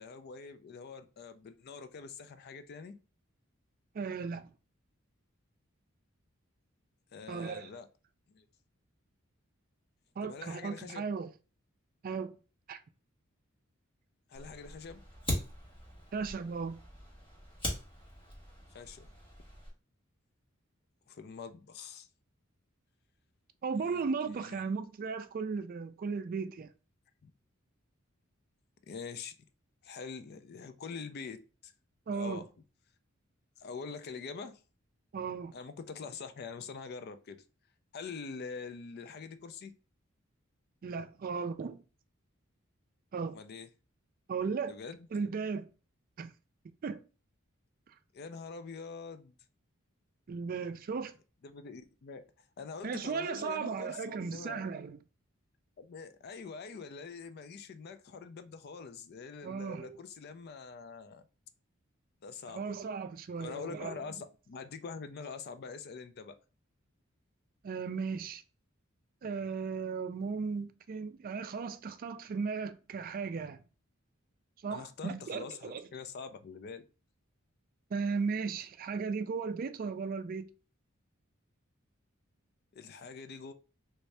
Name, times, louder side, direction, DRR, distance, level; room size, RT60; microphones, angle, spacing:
voice 1, 0.0-2.9 7.1-7.9 8.3-8.5 10.2-11.1 14.3-15.0 18.7-19.1 21.1-22.1 23.8-24.7 27.2-27.3 28.9-29.3 29.8-31.7 32.1-32.5 33.6-34.6 35.5-37.4 37.9-39.7 43.3-43.7 44.7-45.0 48.1-49.3 51.4-52.2 52.6-54.6 55.8-61.2 62.2-62.8 63.4-66.4 74.7-76.8 82.7-83.5, left 5 dB, 50° left, 0.4 m, -45 dB
voice 2, 3.9-4.5 7.3-7.7 10.2-11.3 12.0-12.4 12.7-12.8 16.1-16.8 23.6-26.7 32.1-32.4 35.1-35.5 40.8-41.8 43.1-43.4 44.3-44.8 45.1-45.7 46.2-46.3 46.8-47.0 50.3-51.1 52.8-55.0 59.4-60.0 62.5-64.0 67.6-68.4 69.2-73.6 74.6-75.8 77.9-80.5, right 5 dB, 45° right, 0.3 m, -36 dB
Fire, 14.3-19.7, left 1 dB, 25° left, 1.2 m, -41 dB
3.2 x 2.7 x 3.2 m
head